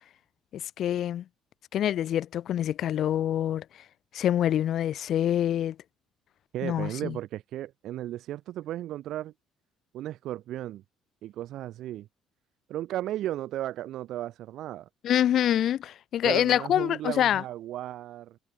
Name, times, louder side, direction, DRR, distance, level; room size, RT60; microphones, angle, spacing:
voice 1, 0.5-1.2 1.7-3.6 4.1-5.8 6.6-7.2 15.0-17.4, left 11 dB, 55° left, 0.6 m, -26 dB
voice 2, 6.5-9.3 9.9-10.8 11.2-12.1 12.7-14.9 16.2-18.4, right 13 dB, 65° right, 0.6 m, -35 dB
cardioid pair, 120°, 0 cm